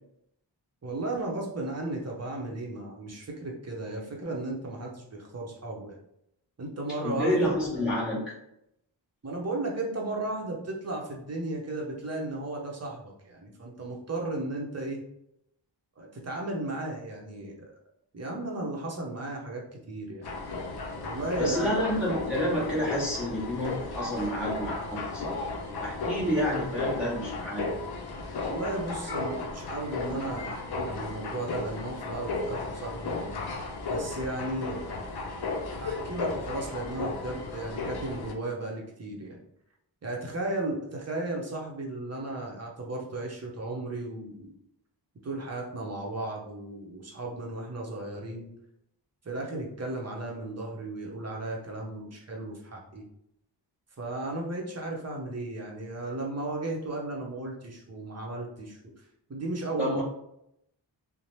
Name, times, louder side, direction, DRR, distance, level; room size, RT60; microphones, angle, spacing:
voice 1, 0.8-6.0 6.6-7.5 9.2-15.0 16.0-17.7 18.1-20.3 21.0-21.9 28.4-33.2 33.9-35.1 35.7-39.4 40.0-44.5 45.2-48.5 49.2-53.0 54.0-59.0 59.3-60.0, right 2 dB, 35° right, -1 dB, 0.8 m, -35 dB
voice 2, 7.0-8.3 21.4-27.7 59.8-60.0, equal, ahead, -8 dB, 1.1 m, -29 dB
sound 1, 20.2-38.3, left 3 dB, 60° left, 0.6 m, -35 dB
2.8 x 2.1 x 3.1 m, 0.77 s
wide cardioid pair, 75°, 44 cm